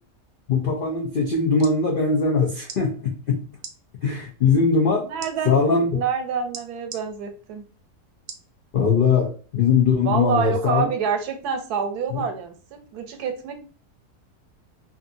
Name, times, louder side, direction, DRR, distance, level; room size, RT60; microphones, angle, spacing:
voice 1, 0.5-3.4 4.0-5.1 5.4-6.0 8.7-10.9 12.1-12.2, left 5 dB, 75° left, -2 dB, 0.5 m, -21 dB
sound 1, 1.6-1.8 2.6-2.8 3.6-3.8 5.2-5.3 6.5-7.0 8.3-8.5 9.1-9.2, right 6 dB, 65° right, 0.8 m, -38 dB
voice 2, 5.1-5.6 5.9-7.6 10.0-13.6, right 6 dB, 90° right, 7 dB, 1.1 m, -27 dB
2.6 x 2.5 x 2.5 m, 0.39 s
omnidirectional pair, 1.6 m